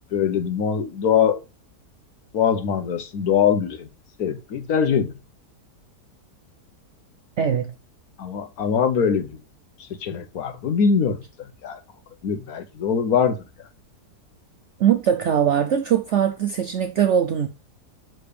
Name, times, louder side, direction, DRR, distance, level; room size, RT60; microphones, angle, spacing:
voice 1, 0.1-1.4 2.3-3.9 4.2-5.1 8.2-9.4 9.8-11.2 11.6-11.8 12.2-13.4, left 7 dB, 65° left, 1.2 m, -22 dB
voice 2, 7.4-7.7 14.8-17.5, right 9 dB, 70° right, 0.7 m, -21 dB
6.7 x 3.8 x 5.0 m
omnidirectional pair, 1.8 m